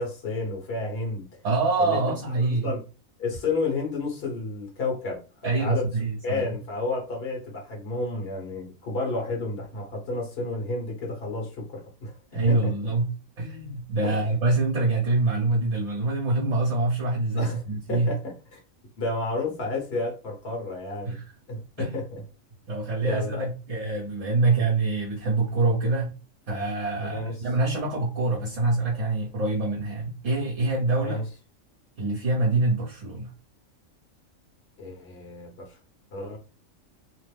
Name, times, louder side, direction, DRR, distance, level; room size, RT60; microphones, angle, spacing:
voice 1, 0.0-1.3 1.8-2.0 2.6-2.8 3.2-5.2 5.6-5.8 6.2-12.7 14.0-14.2 17.4-18.6 19.0-21.1 21.5-22.2 23.0-23.5 27.1-27.4 31.0-31.2 34.8-35.8 36.1-36.4, left 3 dB, 50° left, 1.2 m, -31 dB
voice 2, 1.4-2.7 5.4-6.5 12.3-13.1 13.4-18.1 21.0-21.2 21.8-21.9 22.7-26.1 26.5-31.2 32.0-33.3, right 2 dB, 65° right, 1.2 m, -25 dB
2.9 x 2.0 x 3.3 m
omnidirectional pair, 1.4 m